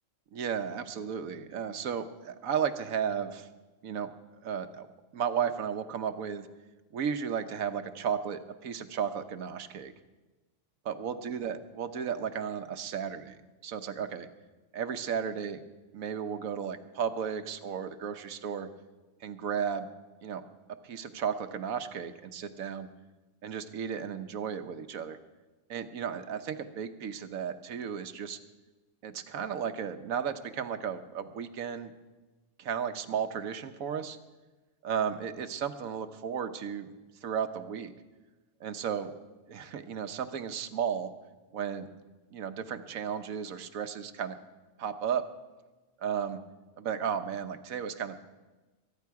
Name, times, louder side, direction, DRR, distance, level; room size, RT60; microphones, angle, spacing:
voice 1, 0.3-3.5 3.8-4.1 4.4-4.9 5.1-6.5 6.9-9.9 10.8-14.3 14.7-15.6 15.9-18.7 19.2-19.9 20.2-20.4 20.8-22.9 23.4-25.2 25.7-28.4 29.0-31.9 32.6-34.2 34.8-36.9 37.2-37.9 38.6-39.1 39.5-41.1 41.5-41.9 42.3-44.4 44.8-45.2 46.0-46.4 46.8-48.2, right 7 dB, 90° right, 9 dB, 1.3 m, -34 dB
23.0 x 9.9 x 4.7 m, 1.2 s
omnidirectional pair, 1.4 m